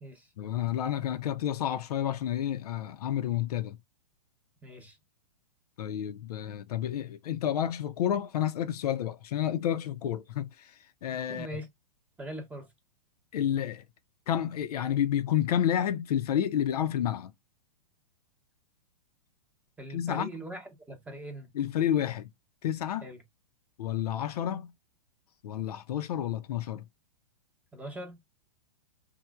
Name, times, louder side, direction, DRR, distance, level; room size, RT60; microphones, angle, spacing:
voice 1, 0.4-3.8 5.8-11.6 13.3-13.9 14.3-17.3 19.9-20.3 21.5-22.3 22.6-23.1 23.8-24.7 25.4-26.8, left 10 dB, 65° left, 0.4 m, -30 dB
voice 2, 4.6-5.0 11.3-11.7 12.2-12.7 19.8-21.5 23.0-23.2 27.7-28.2, right 1 dB, 5° right, 0.7 m, -41 dB
3.0 x 2.0 x 2.2 m
hypercardioid pair, 120°, 21 cm